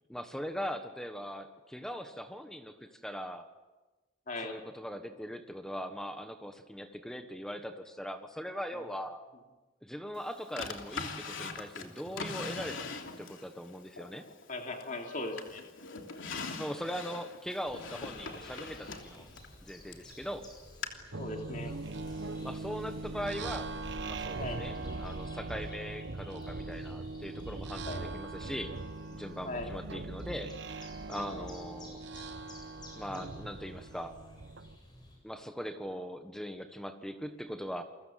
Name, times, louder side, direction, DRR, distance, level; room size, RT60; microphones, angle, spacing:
voice 1, 0.1-3.5 4.4-9.2 9.8-12.8 13.2-14.2 16.6-19.3 19.7-20.5 22.4-23.7 24.0-28.7 29.2-32.0 33.0-34.2 35.2-37.8, equal, 5° left, 7 dB, 1.3 m, -40 dB
voice 2, 4.3-4.6 8.7-8.8 14.5-15.6 21.2-21.7 24.4-24.6 27.8-28.0 29.4-29.7 31.3-31.5, left 2 dB, 40° left, 2 dB, 3.2 m, -38 dB
Drawer open or close, 10.6-13.5 14.0-15.0 15.4-20.1 20.8-20.9, left 4 dB, 70° left, 3.2 m, -41 dB
sound 1, 17.6-35.2, left 1 dB, 20° left, 7.7 m, -52 dB
sound 2, 21.1-34.8, right 3 dB, 60° right, 1.1 m, -41 dB
29.5 x 23.0 x 7.6 m, 1.2 s
head